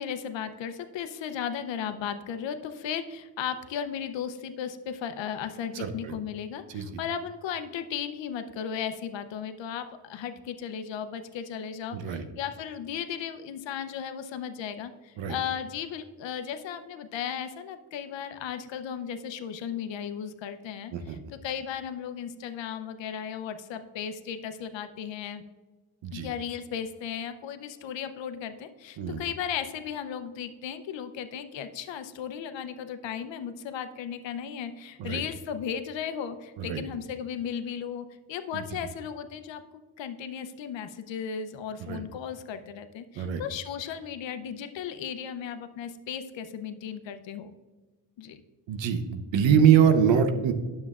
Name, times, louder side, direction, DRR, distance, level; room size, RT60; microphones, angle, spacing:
voice 1, 0.0-25.4 26.1-39.6 40.0-47.5 48.2-48.4, left 8 dB, 75° left, 9 dB, 0.7 m, -35 dB
voice 2, 5.7-6.1 6.7-6.9 11.9-12.2 15.2-15.4 20.9-21.2 26.0-26.3 29.0-29.2 35.0-35.2 36.6-36.8 38.5-38.6 41.9-42.0 43.2-43.4 48.7-50.5, right 8 dB, 75° right, 8 dB, 0.8 m, -24 dB
9.6 x 7.3 x 2.4 m, 1.3 s
cardioid pair, 75°, 45 cm